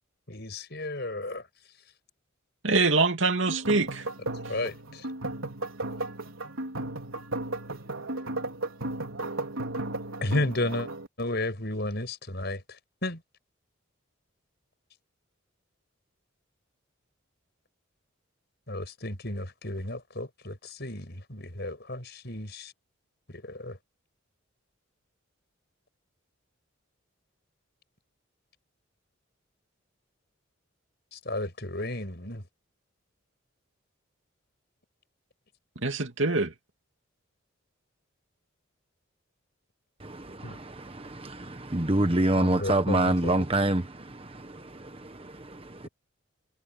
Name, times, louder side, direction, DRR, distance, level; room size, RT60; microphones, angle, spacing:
voice 1, 0.3-1.5 4.5-5.1 10.2-10.9 11.2-13.2 18.7-22.7 23.3-23.8 31.1-32.4 40.4-40.6 42.4-43.3 45.8-45.9, left 1 dB, 50° left, 6.8 m, -33 dB
voice 2, 2.6-4.1 35.8-36.5, right 3 dB, 65° right, 2.7 m, -24 dB
sound 1, 3.5-11.1, right 2 dB, 80° right, 4.1 m, -35 dB
voice 3, 40.0-45.9, right 1 dB, 25° right, 1.2 m, -27 dB
head